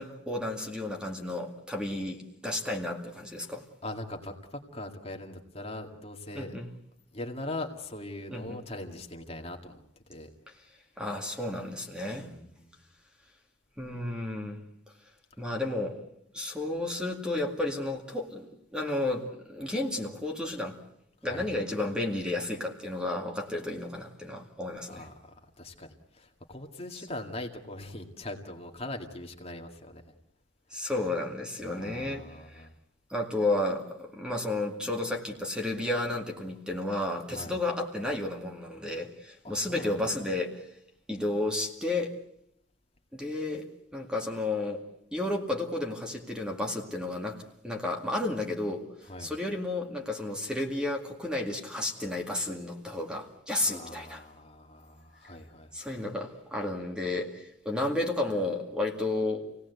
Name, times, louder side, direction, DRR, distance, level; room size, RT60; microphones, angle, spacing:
voice 1, 0.0-3.6 6.3-6.7 8.3-8.6 11.0-12.3 13.8-14.6 15.4-16.0 16.3-18.5 18.7-20.8 21.2-25.1 30.7-32.7 33.1-40.6 41.1-42.2 43.1-43.7 43.9-44.8 45.1-48.9 49.2-54.2 55.7-59.5, left 2 dB, 5° right, 2 dB, 2.1 m, -32 dB
voice 2, 3.8-6.6 7.1-9.8 10.1-10.3 12.3-12.7 21.2-21.5 24.9-30.0 30.7-30.9 31.6-32.7 37.3-37.6 39.4-40.0 49.1-49.3 53.6-55.7, left 1 dB, 30° left, 3 dB, 2.1 m, -41 dB
27.5 x 18.0 x 8.2 m, 0.76 s
head